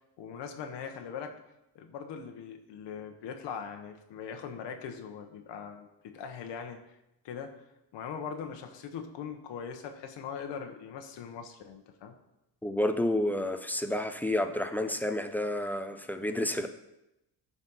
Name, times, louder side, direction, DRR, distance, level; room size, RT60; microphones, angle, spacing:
voice 1, 0.2-1.3 1.7-6.8 7.2-7.5 7.9-12.1, left 7 dB, 85° left, 4 dB, 1.0 m, -41 dB
voice 2, 12.6-16.7, left 1 dB, 5° left, 7 dB, 0.4 m, -30 dB
12.0 x 4.2 x 5.5 m, 0.89 s
cardioid pair, 150°, 42 cm